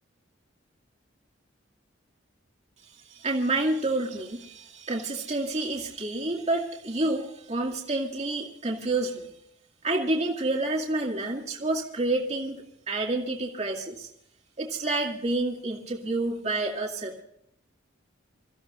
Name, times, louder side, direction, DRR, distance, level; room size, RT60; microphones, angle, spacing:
voice 1, 3.1-9.3 9.8-14.1 14.6-17.2, right 2 dB, 35° right, -1 dB, 2.3 m, -29 dB
27.0 x 15.0 x 2.6 m, 0.76 s
head